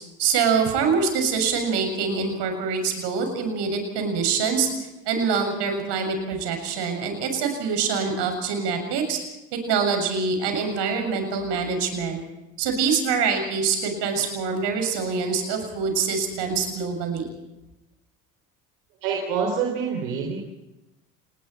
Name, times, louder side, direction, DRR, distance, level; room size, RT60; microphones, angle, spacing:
voice 1, 0.2-4.7 5.1-9.2 9.5-12.2 12.6-17.3, right 5 dB, 65° right, 5 dB, 7.3 m, -25 dB
voice 2, 19.0-20.4, right 6 dB, 80° right, 1 dB, 3.8 m, -26 dB
30.0 x 20.5 x 4.6 m, 0.97 s
hypercardioid pair, 60°, 45 cm